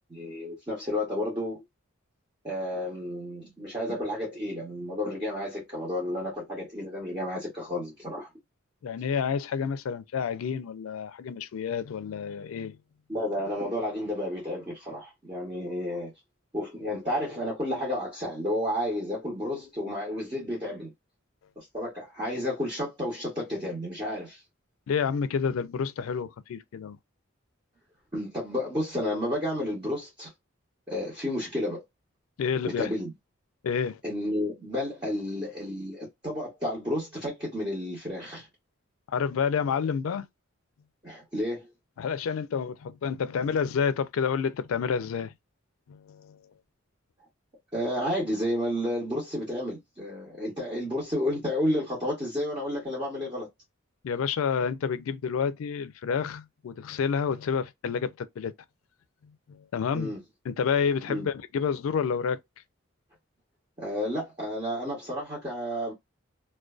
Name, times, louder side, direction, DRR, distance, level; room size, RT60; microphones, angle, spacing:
voice 1, 0.1-1.6 2.4-8.3 13.1-16.1 16.5-20.9 21.6-24.4 28.1-30.3 30.9-31.8 32.6-33.1 34.0-38.5 41.0-41.7 47.7-53.5 59.9-60.2 61.1-61.3 63.8-65.9, left 1 dB, 20° right, 0.9 m, -31 dB
voice 2, 8.8-12.8 24.9-27.0 32.4-32.9 33.6-34.0 39.1-40.3 42.0-45.3 45.9-46.4 54.0-58.5 59.5-60.1 60.5-62.4, left 6 dB, 85° left, 0.3 m, -29 dB
2.5 x 2.2 x 2.3 m
head